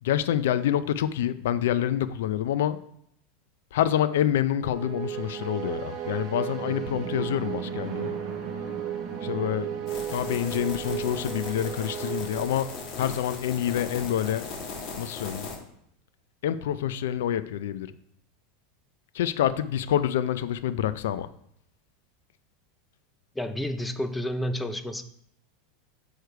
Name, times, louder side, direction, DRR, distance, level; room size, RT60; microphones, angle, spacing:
voice 1, 0.0-2.8 3.7-8.1 9.2-9.7 10.1-14.5 15.0-15.5 16.4-17.9 19.1-21.3, left 11 dB, 85° left, 14 dB, 0.4 m, -27 dB
sound 1, 4.6-13.0, right 9 dB, 40° right, 1.3 m, -34 dB
sound 2, 9.9-15.6, left 4 dB, 45° left, 1.6 m, -38 dB
voice 2, 23.3-25.0, equal, 5° left, 9 dB, 0.5 m, -30 dB
6.3 x 4.9 x 4.6 m, 0.72 s
supercardioid pair, 150°, 0 cm